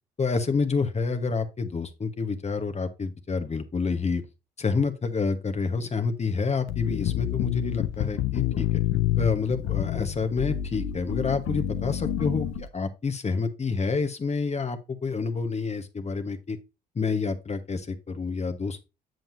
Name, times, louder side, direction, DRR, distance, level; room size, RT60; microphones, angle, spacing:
voice 1, 0.2-4.2 4.6-8.8 9.2-16.6 16.9-18.8, left 4 dB, 30° left, 1.2 m, -28 dB
sound 1, 6.7-12.7, left 12 dB, 70° left, 0.8 m, -28 dB
7.6 x 7.2 x 2.6 m
hypercardioid pair, 50°, 21 cm